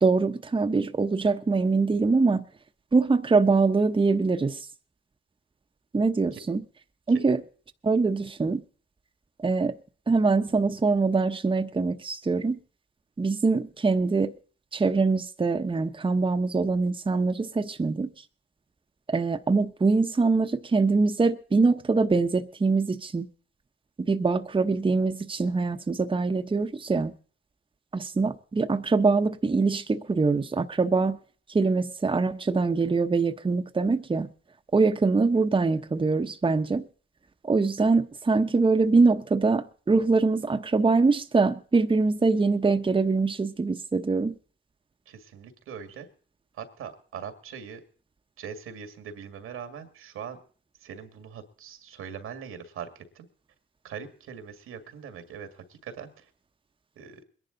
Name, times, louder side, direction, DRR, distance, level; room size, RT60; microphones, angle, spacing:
voice 1, 0.0-2.4 2.9-4.7 5.9-6.6 7.1-7.4 7.8-8.6 9.4-9.8 10.1-12.6 13.2-14.3 14.7-18.1 19.1-23.3 24.0-27.1 27.9-31.2 31.5-34.3 34.7-36.8 37.4-44.3, right 4 dB, 25° right, 0.9 m, -23 dB
voice 2, 45.1-46.1 46.5-47.8 48.4-50.4 50.8-53.3 53.8-56.3 57.0-57.2, right 7 dB, 90° right, 2.1 m, -41 dB
21.5 x 11.0 x 3.9 m
cardioid pair, 70°, 21 cm